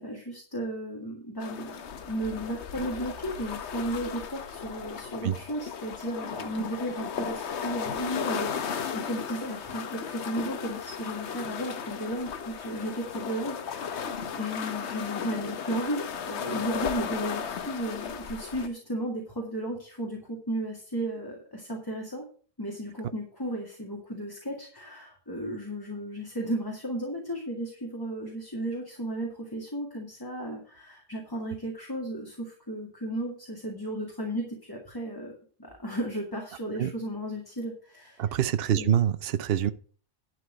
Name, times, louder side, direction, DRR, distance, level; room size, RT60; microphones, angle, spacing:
voice 1, 0.0-1.8 2.1-22.3 22.6-38.4 38.8-39.0, right 1 dB, 20° left, -1 dB, 2.1 m, -34 dB
sound 1, 1.4-18.7, left 7 dB, 90° left, 1.2 m, -35 dB
voice 2, 38.2-39.7, right 10 dB, 65° right, 12 dB, 0.8 m, -25 dB
11.5 x 4.6 x 7.7 m, 0.42 s
omnidirectional pair, 1.1 m